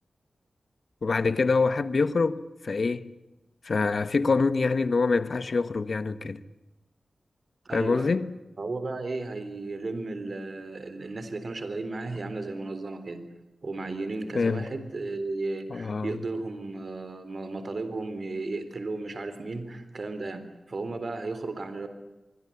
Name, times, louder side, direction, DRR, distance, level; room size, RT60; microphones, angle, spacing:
voice 1, 1.0-3.1 3.6-6.4 7.7-8.4 14.3-14.7 15.7-16.2, left 4 dB, 60° left, 1.4 m, -25 dB
voice 2, 7.7-8.2 8.6-13.2 13.6-21.9, right 3 dB, 55° right, 3.8 m, -34 dB
25.5 x 22.5 x 8.6 m
wide cardioid pair, 85°, 0 cm